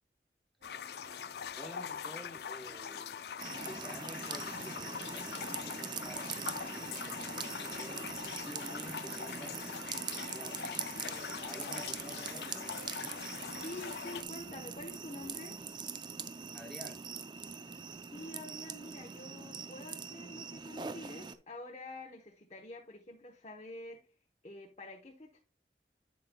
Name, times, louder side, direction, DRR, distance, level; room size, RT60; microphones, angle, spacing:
sound 1, 0.6-14.2, left 7 dB, 65° left, 0.4 m, -43 dB
sound 2, 0.6-15.8, right 2 dB, 55° right, 0.8 m, -60 dB
voice 1, 1.6-3.1 3.6-12.7 16.5-17.1, equal, ahead, 0.9 m, -51 dB
sound 3, 3.4-21.3, right 6 dB, 25° right, 0.4 m, -43 dB
voice 2, 13.5-15.6 18.1-24.1 24.4-25.4, left 2 dB, 35° left, 0.9 m, -47 dB
8.4 x 8.0 x 2.2 m
head